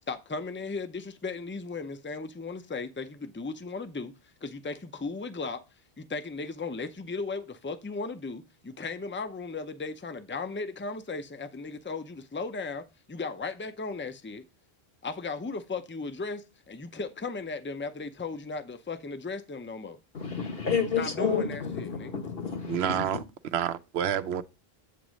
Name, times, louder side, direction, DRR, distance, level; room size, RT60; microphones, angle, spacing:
voice 1, 0.1-4.1 4.4-5.6 6.0-14.5 15.0-20.0 21.0-22.3, left 4 dB, 15° left, 0.5 m, -36 dB
voice 2, 20.1-23.0, left 6 dB, 70° left, 1.5 m, -30 dB
voice 3, 22.7-23.2 23.5-24.4, right 9 dB, 85° right, 0.9 m, -28 dB
8.5 x 3.0 x 6.2 m
omnidirectional pair, 1.0 m